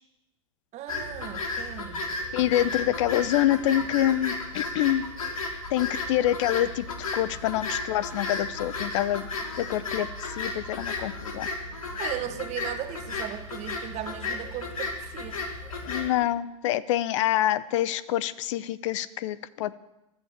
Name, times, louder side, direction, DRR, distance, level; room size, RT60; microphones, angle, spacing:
voice 1, 0.7-2.1 12.0-15.4, right 12 dB, 40° right, 9 dB, 1.7 m, -37 dB
sound 1, 0.9-16.1, left 3 dB, 85° left, 3.2 m, -34 dB
voice 2, 2.3-5.0 5.7-6.9 7.1-9.3 9.6-10.1 10.3-11.5 15.8-19.7, left 13 dB, 65° left, 17 dB, 0.8 m, -26 dB
15.0 x 11.5 x 7.3 m, 0.94 s
hypercardioid pair, 100°, 17 cm